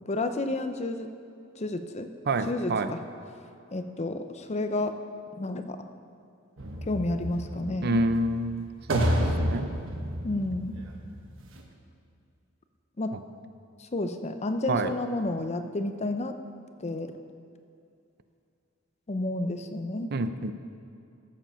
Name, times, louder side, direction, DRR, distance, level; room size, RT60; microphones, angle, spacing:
voice 1, 0.1-1.1 1.6-2.1 2.5-3.0 3.7-4.9 5.4-5.8 6.9-8.0 10.2-10.7 13.0-13.1 13.8-16.3 16.8-17.1 19.1-20.1, left 2 dB, 35° left, 8 dB, 0.6 m, -30 dB
voice 2, 2.3-2.9 7.8-9.7 13.1-13.2 14.7-14.9 20.1-20.5, right 2 dB, 55° right, 10 dB, 0.6 m, -28 dB
sound 1, 6.6-11.6, equal, 70° right, 1.3 m, -30 dB
14.5 x 7.4 x 5.6 m, 2.5 s
head